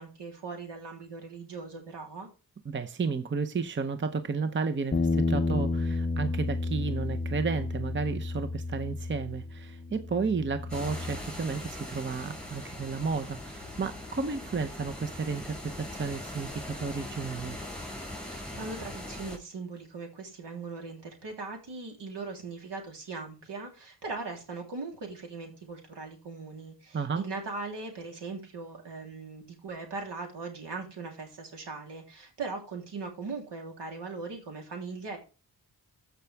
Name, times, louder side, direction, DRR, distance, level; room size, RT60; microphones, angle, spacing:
voice 1, 0.0-2.3 18.3-35.2, right 4 dB, 75° right, 3.4 m, -39 dB
voice 2, 2.6-17.6 26.9-27.2, right 5 dB, 25° right, 0.8 m, -32 dB
sound 1, 4.9-11.2, left 3 dB, 20° left, 0.6 m, -31 dB
sound 2, 10.7-19.4, left 1 dB, ahead, 5.6 m, -41 dB
14.0 x 5.9 x 3.4 m
cardioid pair, 75°, 43 cm